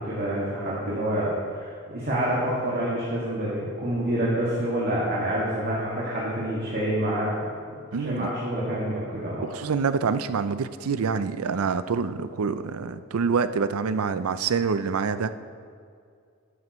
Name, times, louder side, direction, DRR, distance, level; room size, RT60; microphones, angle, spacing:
voice 1, 0.0-7.3 8.0-9.4, right 1 dB, 45° right, -7 dB, 2.0 m, -27 dB
voice 2, 7.9-8.3 9.4-15.3, right 5 dB, 80° right, 12 dB, 0.5 m, -26 dB
12.5 x 11.0 x 3.1 m, 2.3 s
head